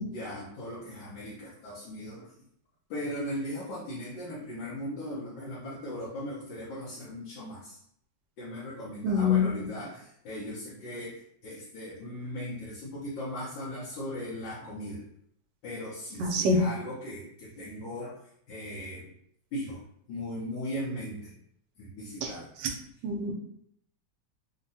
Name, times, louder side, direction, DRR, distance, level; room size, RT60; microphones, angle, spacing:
voice 1, 0.0-2.3 2.9-7.8 8.4-15.0 15.6-18.2 18.5-19.1 19.5-19.8 20.1-21.3 21.8-22.5, left 1 dB, 75° left, -6 dB, 1.4 m, -38 dB
voice 2, 9.0-9.7 16.2-16.7 22.2-22.3 22.6-22.7 23.0-23.3, left 3 dB, 75° right, 2 dB, 1.2 m, -25 dB
3.6 x 2.2 x 2.7 m, 0.70 s
omnidirectional pair, 2.1 m